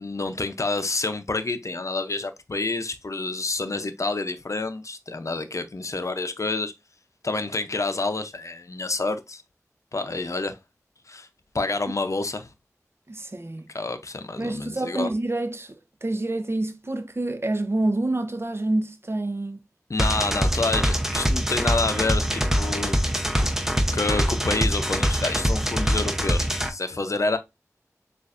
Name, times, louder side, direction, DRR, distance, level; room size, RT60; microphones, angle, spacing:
voice 1, 0.0-6.7 7.2-9.4 9.9-10.6 11.1-11.3 11.5-12.5 13.7-15.1 19.9-23.0 23.4-23.5 23.9-27.4, left 3 dB, 60° left, 0.6 m, -28 dB
voice 2, 13.1-13.7 14.4-19.6, right 2 dB, 45° right, 0.7 m, -27 dB
sound 1, 20.0-26.7, equal, 5° right, 0.7 m, -24 dB
6.6 x 2.5 x 2.5 m
wide cardioid pair, 45°, 6 cm